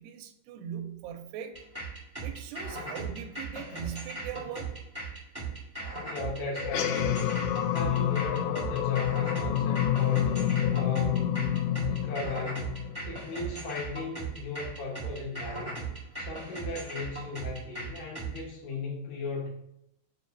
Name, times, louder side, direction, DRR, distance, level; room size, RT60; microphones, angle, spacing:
voice 1, 0.0-1.6 2.2-4.8, right 8 dB, 85° right, 4 dB, 2.3 m, -40 dB
sound 1, 1.5-18.4, right 3 dB, 10° right, 0.6 m, -38 dB
voice 2, 6.0-10.4 10.7-11.2 11.9-12.7 13.0-15.8 16.2-19.5, left 3 dB, 70° left, -2 dB, 2.2 m, -37 dB
sound 2, 6.6-13.3, left 11 dB, 90° left, 3.0 m, -28 dB
7.0 x 2.6 x 5.7 m, 0.77 s
omnidirectional pair, 5.2 m